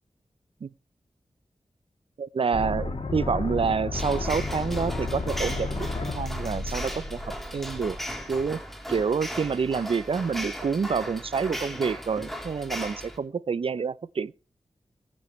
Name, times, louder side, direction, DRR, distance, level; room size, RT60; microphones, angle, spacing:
voice 1, 2.2-7.2 7.5-8.0 8.3-8.6 8.9-14.3, right 5 dB, 65° right, 0.6 m, -28 dB
sound 1, 2.5-8.5, left 2 dB, 75° left, 2.8 m, -32 dB
sound 2, 3.9-13.2, equal, ahead, 3.3 m, -37 dB
20.0 x 9.5 x 3.2 m
cardioid pair, 55°, 10 cm